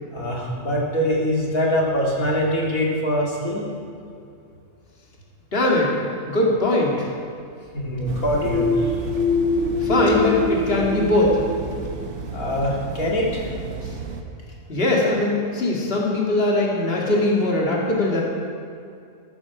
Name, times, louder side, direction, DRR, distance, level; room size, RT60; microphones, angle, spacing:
voice 1, 0.1-3.6 7.7-8.9 12.3-13.5, equal, 80° left, -4 dB, 2.9 m, -23 dB
voice 2, 5.5-5.9 6.3-7.1 9.8-11.4 14.7-18.2, left 2 dB, 45° left, -3 dB, 2.4 m, -20 dB
sound 1, 8.1-14.2, right 5 dB, 85° right, 1.5 m, -33 dB
sound 2, 8.4-12.1, left 3 dB, 35° right, 1.5 m, -24 dB
14.0 x 13.0 x 4.9 m, 2.5 s
omnidirectional pair, 1.4 m